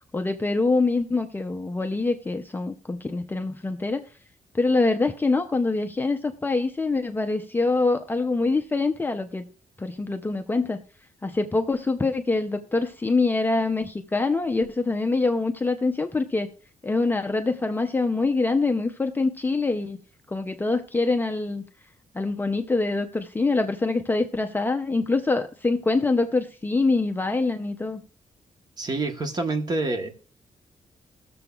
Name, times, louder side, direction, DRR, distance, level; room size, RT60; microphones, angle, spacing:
voice 1, 0.1-4.1 4.5-9.4 9.8-10.8 11.2-16.5 16.8-20.0 20.3-21.6 22.1-28.0, left 3 dB, 15° left, 5 dB, 0.5 m, -24 dB
voice 2, 28.8-30.1, right 2 dB, 30° right, 5 dB, 1.1 m, -27 dB
20.5 x 6.9 x 2.3 m, 0.40 s
wide cardioid pair, 165°, 13 cm